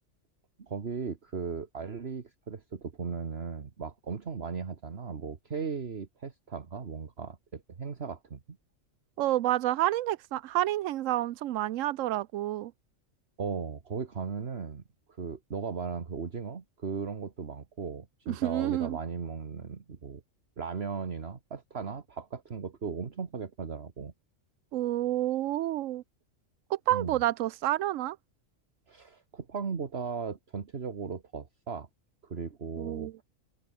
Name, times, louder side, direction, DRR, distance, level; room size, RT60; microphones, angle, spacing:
voice 1, 0.6-8.6 13.4-14.8 15.2-20.2 20.6-24.1 26.9-27.2 28.9-31.9 32.2-33.1, right 5 dB, 50° right, 1.7 m, -37 dB
voice 2, 9.2-12.7 18.3-19.0 24.7-26.0 26.7-28.2 32.8-33.1, right 14 dB, 75° right, 1.0 m, -29 dB
omnidirectional pair, 1.4 m